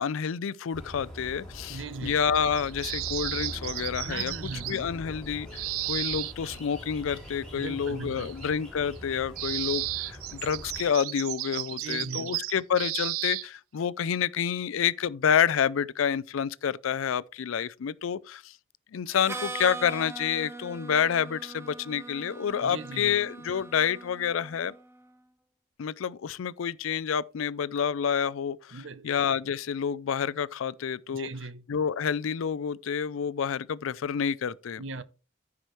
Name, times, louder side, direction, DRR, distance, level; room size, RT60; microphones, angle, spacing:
voice 1, 0.0-4.3 4.7-18.5 18.9-24.7 25.8-31.3 31.7-34.8, left 7 dB, 75° left, 0.4 m, -28 dB
sound 1, 0.7-10.9, equal, 5° left, 3.0 m, -43 dB
voice 2, 1.7-2.2 4.0-4.9 7.6-8.4 11.8-12.3 22.6-23.2 28.7-29.1 31.1-31.7 34.8-35.0, right 3 dB, 65° right, 0.7 m, -39 dB
sound 2, 2.1-4.8 5.5-6.6 8.2-8.5 9.0-9.1 9.4-13.5, right 18 dB, 85° right, 0.3 m, -34 dB
Harmonica, 19.1-24.8, right 3 dB, 10° right, 0.7 m, -41 dB
14.5 x 4.8 x 3.1 m
head